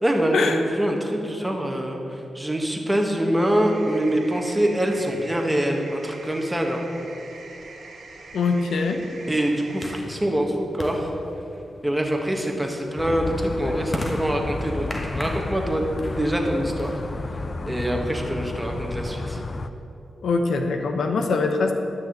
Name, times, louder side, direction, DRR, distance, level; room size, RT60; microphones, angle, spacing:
voice 1, 0.0-6.8 9.3-11.1 11.8-15.9 16.2-17.0 17.3-19.4, right 1 dB, 10° right, 1 dB, 1.6 m, -25 dB
sound 1, 3.6-10.0, right 3 dB, 80° right, 2.3 m, -44 dB
sound 2, 7.1-17.5, left 1 dB, 20° left, 1.3 m, -38 dB
voice 2, 8.3-9.0 20.2-21.7, left 4 dB, 80° left, 4 dB, 1.1 m, -23 dB
sound 3, 13.0-19.7, left 2 dB, 40° left, 0.5 m, -31 dB
12.0 x 6.2 x 8.8 m, 2.9 s
wide cardioid pair, 110°, 0 cm